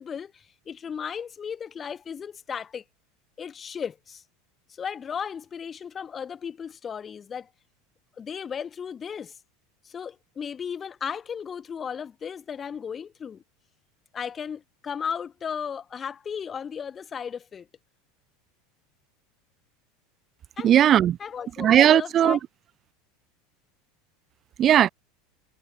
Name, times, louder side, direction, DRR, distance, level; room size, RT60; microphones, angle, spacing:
voice 1, 0.0-2.8 3.4-4.2 4.8-7.5 8.2-9.3 9.8-13.4 14.1-17.7 20.6-20.7 21.2-22.4, left 7 dB, 25° left, 7.5 m, -35 dB
voice 2, 20.6-21.2 21.6-22.4 24.6-24.9, right 10 dB, 35° right, 5.1 m, -17 dB
figure-of-eight pair, 75°, 0 cm